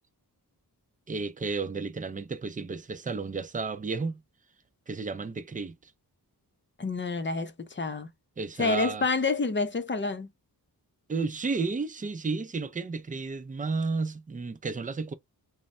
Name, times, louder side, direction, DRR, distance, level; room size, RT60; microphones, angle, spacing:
voice 1, 1.1-4.2 4.9-5.9 8.4-9.1 11.1-15.1, right 4 dB, 20° right, 0.4 m, -32 dB
voice 2, 6.8-8.1 8.6-10.3, left 3 dB, 30° left, 0.6 m, -28 dB
3.1 x 2.1 x 2.5 m
wide cardioid pair, 110°, 39 cm